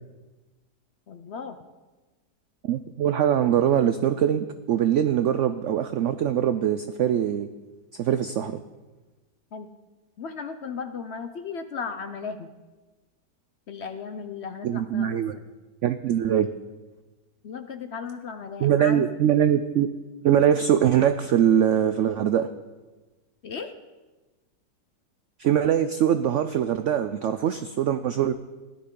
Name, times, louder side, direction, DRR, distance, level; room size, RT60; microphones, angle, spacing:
voice 1, 1.1-1.7 9.5-9.7 10.2-12.5 13.7-15.4 17.4-19.1 23.4-23.7, left 5 dB, 65° left, 9 dB, 0.6 m, -36 dB
voice 2, 2.6-7.5 8.0-8.6 14.6-15.3 15.8-16.5 18.6-19.9 20.2-22.5 25.4-28.3, right 9 dB, 85° right, 10 dB, 0.6 m, -22 dB
17.0 x 12.0 x 3.8 m, 1.2 s
omnidirectional pair, 1.8 m